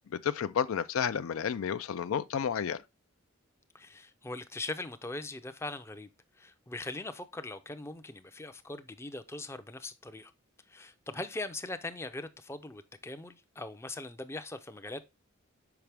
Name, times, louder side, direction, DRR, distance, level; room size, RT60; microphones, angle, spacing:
voice 1, 0.2-2.8, left 7 dB, 75° left, 0.4 m, -31 dB
voice 2, 3.7-6.1 6.4-10.3 10.7-15.0, left 2 dB, 15° left, 0.5 m, -41 dB
5.9 x 5.0 x 3.3 m
head